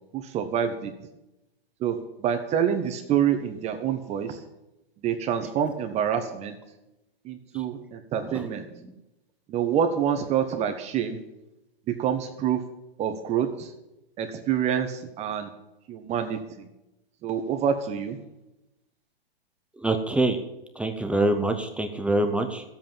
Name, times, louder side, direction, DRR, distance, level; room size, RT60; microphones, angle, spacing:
voice 1, 0.1-0.9 1.8-4.4 5.0-6.6 7.2-8.6 9.5-11.2 11.9-12.6 13.0-13.7 14.2-15.5 15.9-16.7 17.2-18.2, right 8 dB, 20° right, 7 dB, 1.3 m, -27 dB
voice 2, 19.8-20.4 20.8-22.6, right 2 dB, 5° right, 5 dB, 0.7 m, -25 dB
13.5 x 8.1 x 7.3 m, 0.92 s
hypercardioid pair, 145°, 30 cm